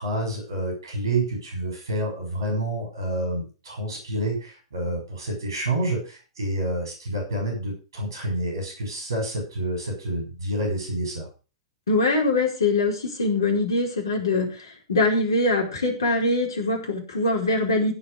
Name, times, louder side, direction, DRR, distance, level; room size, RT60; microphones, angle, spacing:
voice 1, 0.0-11.3, right 1 dB, 75° right, 1 dB, 6.1 m, -28 dB
voice 2, 11.9-14.5 14.9-17.9, left 2 dB, 70° left, 0 dB, 4.7 m, -23 dB
16.5 x 5.5 x 6.6 m, 0.35 s
figure-of-eight pair, 95°, 2 cm